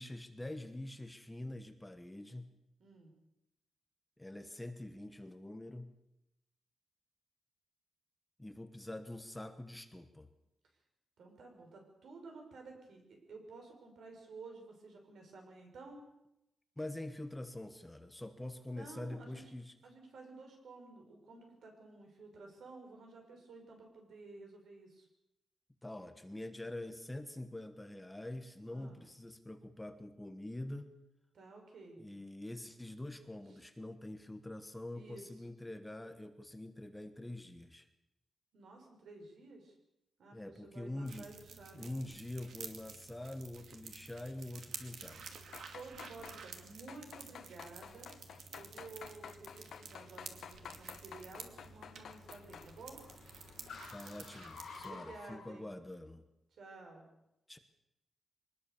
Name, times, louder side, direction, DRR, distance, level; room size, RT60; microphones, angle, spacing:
voice 1, 0.0-2.5 4.2-5.9 8.4-10.3 16.8-19.7 25.8-30.9 31.9-37.9 40.3-41.3 41.7-45.2 53.9-56.2 57.5-57.6, left 1 dB, 10° left, 8 dB, 1.2 m, -45 dB
voice 2, 2.8-3.1 11.2-16.0 18.7-19.4 19.8-25.1 28.7-29.0 31.3-32.1 34.9-35.5 38.5-39.7 40.2-41.9 45.6-48.1 48.5-53.0 54.8-55.7 56.5-57.1, right 3 dB, 75° right, 3 dB, 6.4 m, -53 dB
sound 1, 41.1-54.9, right 5 dB, 90° right, 2.5 m, -51 dB
sound 2, 45.4-46.4 46.9-52.7 53.1-53.4 53.9-54.0, left 8 dB, 80° left, 1.5 m, -51 dB
Car, 46.6-55.6, left 5 dB, 60° left, 4.1 m, -56 dB
23.5 x 20.0 x 7.0 m, 0.88 s
wide cardioid pair, 180°, 0 cm